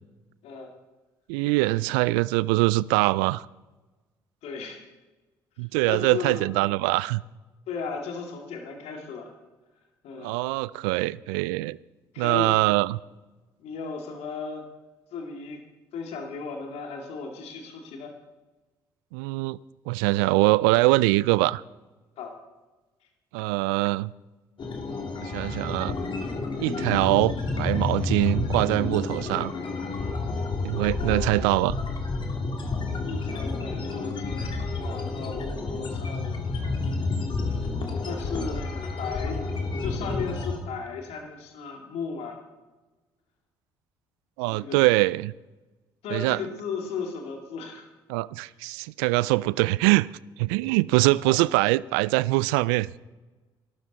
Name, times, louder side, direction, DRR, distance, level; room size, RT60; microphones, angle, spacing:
voice 1, 1.3-3.5 5.6-7.2 10.2-11.8 12.2-13.0 19.1-19.6 19.9-21.6 23.3-24.1 25.2-26.0 26.6-29.5 30.6-31.8 44.4-45.3 46.1-46.4 48.1-50.1 50.4-53.0, right 21 dB, 80° right, 0.4 m, -23 dB
voice 2, 4.4-4.8 5.9-6.5 7.7-9.3 10.0-10.4 12.1-12.6 13.6-14.6 15.1-15.6 15.9-18.1 22.2-22.4 31.0-31.5 33.0-36.4 37.4-37.7 38.0-39.4 39.8-42.4 44.5-44.8 46.0-47.9 51.2-51.4, left 5 dB, 70° left, 2.4 m, -36 dB
sound 1, 24.6-40.6, left 3 dB, 45° left, 2.8 m, -30 dB
18.5 x 12.5 x 4.2 m
hypercardioid pair, 55°, 11 cm